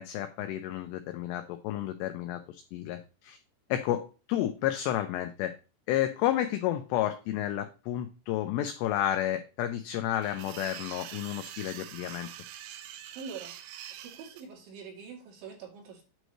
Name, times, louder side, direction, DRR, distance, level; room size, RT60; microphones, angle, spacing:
voice 1, 0.0-3.4 3.7-5.5 5.9-12.3, left 12 dB, 85° left, 7 dB, 2.4 m, -31 dB
sound 1, 10.1-14.4, right 11 dB, 85° right, 3.3 m, -44 dB
voice 2, 13.1-13.6 13.9-16.0, right 6 dB, 70° right, -1 dB, 4.4 m, -44 dB
9.0 x 3.2 x 6.4 m, 0.32 s
omnidirectional pair, 5.6 m